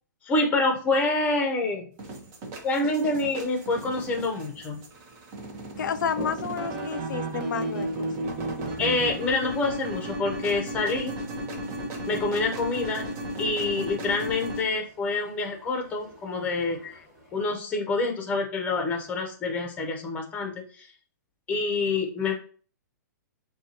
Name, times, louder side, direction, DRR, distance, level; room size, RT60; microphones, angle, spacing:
voice 1, 0.2-1.9 2.6-4.8 8.8-11.2 12.1-13.0 13.4-16.8 17.3-20.9 21.5-22.3, left 3 dB, 15° left, 3 dB, 0.9 m, -27 dB
sound 1, 2.0-14.6, right 1 dB, 30° right, 1.0 m, -34 dB
voice 2, 5.8-8.1 16.8-16.9, left 7 dB, 80° left, 10 dB, 0.4 m, -31 dB
Toilet flush, 6.0-17.5, right 1 dB, 10° right, 1.7 m, -48 dB
7.1 x 2.4 x 2.9 m, 0.42 s
hypercardioid pair, 150°, 10 cm